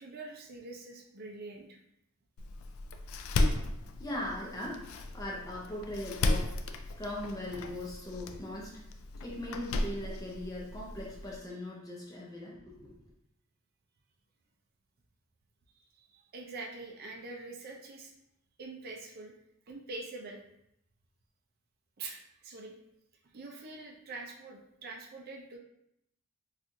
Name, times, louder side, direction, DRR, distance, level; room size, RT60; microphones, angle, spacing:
voice 1, 0.0-1.8 15.8-18.1 18.6-19.3 19.7-20.4 22.0-22.7 23.3-25.6, right 3 dB, 45° right, 0 dB, 0.4 m, -44 dB
Door, 2.4-11.4, left 2 dB, 75° left, 0.3 m, -35 dB
voice 2, 4.0-6.6 7.0-8.8 9.2-13.1, left 1 dB, 15° left, -3 dB, 0.5 m, -40 dB
4.2 x 2.4 x 2.5 m, 0.77 s
head